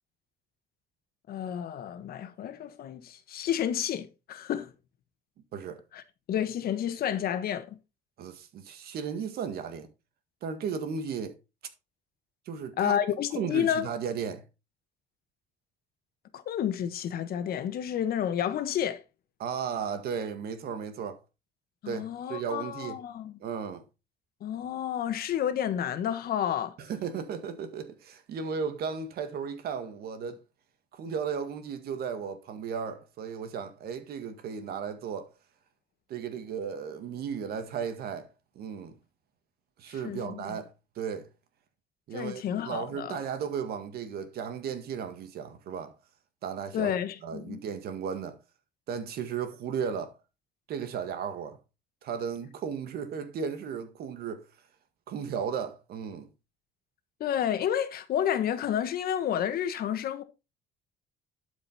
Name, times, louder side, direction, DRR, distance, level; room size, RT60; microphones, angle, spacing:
voice 1, 1.3-4.7 5.9-6.0 6.3-7.8 12.8-13.9 16.3-19.0 21.8-23.4 24.4-26.7 39.9-40.6 42.1-43.2 46.7-47.6 57.2-60.2, left 10 dB, 65° left, 1.4 m, -30 dB
voice 2, 8.2-9.9 10.4-11.3 12.5-12.9 13.4-14.4 19.4-21.2 21.9-23.0 23.4-23.8 26.8-30.4 31.0-35.3 36.1-38.3 38.6-38.9 39.8-41.3 42.1-46.0 46.4-46.9 47.2-48.4 48.9-50.1 50.7-51.6 52.0-54.4 55.1-56.3, right 7 dB, 65° right, 1.9 m, -35 dB
12.0 x 5.3 x 4.2 m
cardioid pair, 110°, 17 cm